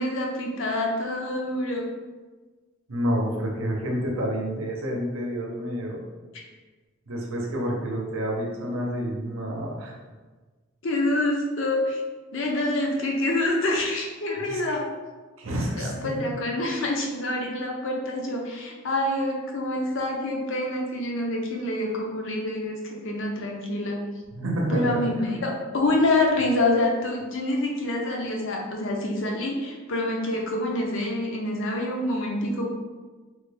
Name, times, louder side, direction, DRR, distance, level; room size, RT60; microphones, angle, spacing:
voice 1, 0.0-1.9 6.3-6.5 10.8-12.0 12.3-14.8 15.8-24.0 24.7-32.7, left 1 dB, 60° left, 0 dB, 0.5 m, -26 dB
voice 2, 2.9-6.0 7.1-9.9 14.5-14.6 15.4-16.3 24.4-24.9 25.2-25.4, equal, 70° right, -1 dB, 0.6 m, -29 dB
3.2 x 2.2 x 3.2 m, 1.3 s
head